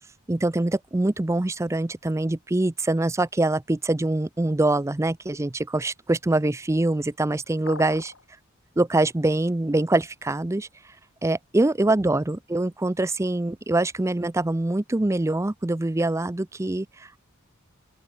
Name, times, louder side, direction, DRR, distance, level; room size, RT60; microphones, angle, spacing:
voice 1, 0.3-8.1 8.8-10.7 11.2-17.2, right 2 dB, 15° right, 0.5 m, -24 dB
sound 1, 7.7-8.2, left 4 dB, 75° left, 2.8 m, -39 dB
open air
head